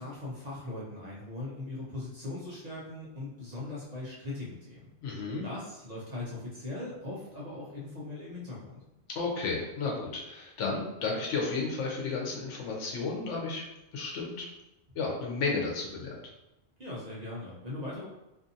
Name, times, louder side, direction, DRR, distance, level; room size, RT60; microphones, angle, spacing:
voice 1, 0.0-4.9 5.2-8.8 16.8-18.1, left 2 dB, 45° right, -6 dB, 0.6 m, -40 dB
voice 2, 5.0-5.5 9.1-13.6 13.9-14.5 14.9-16.2, left 4 dB, 90° left, -2 dB, 1.0 m, -33 dB
2.6 x 2.6 x 2.6 m, 0.93 s
omnidirectional pair, 1.2 m